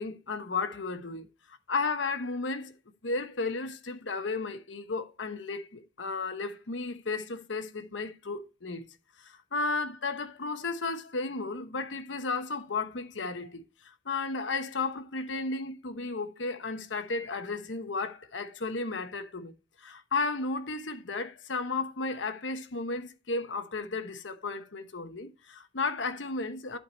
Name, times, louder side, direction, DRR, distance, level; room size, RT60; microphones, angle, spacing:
voice 1, 0.0-2.7 3.0-8.9 9.2-19.5 19.8-26.8, left 3 dB, 90° left, 1.0 m, -34 dB
11.0 x 4.8 x 4.2 m
head